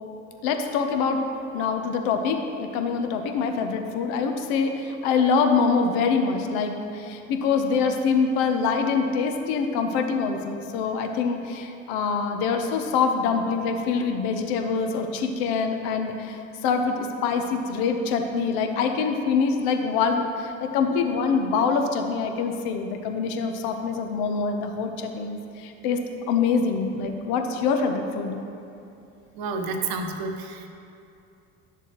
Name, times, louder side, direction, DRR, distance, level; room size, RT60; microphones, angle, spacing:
voice 1, 0.4-1.2 1.5-26.0 26.3-28.4, left 5 dB, 60° left, 5 dB, 0.9 m, -25 dB
voice 2, 29.3-30.7, right 3 dB, 55° right, 4 dB, 1.0 m, -30 dB
11.0 x 6.8 x 3.0 m, 2.6 s
hypercardioid pair, 65°, 41 cm